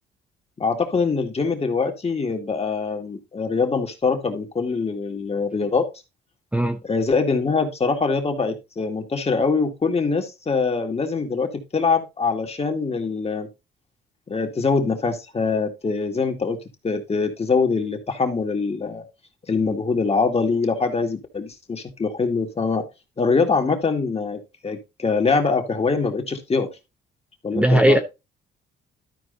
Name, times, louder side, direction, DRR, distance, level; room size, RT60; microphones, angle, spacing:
voice 1, 0.6-5.9 6.8-13.5 14.3-19.1 19.5-22.9 23.2-26.7 27.4-28.0, left 4 dB, 30° left, 2.2 m, -23 dB
voice 2, 27.5-28.0, right 1 dB, 5° right, 0.9 m, -17 dB
12.5 x 4.6 x 4.0 m
cardioid pair, 90°, 20 cm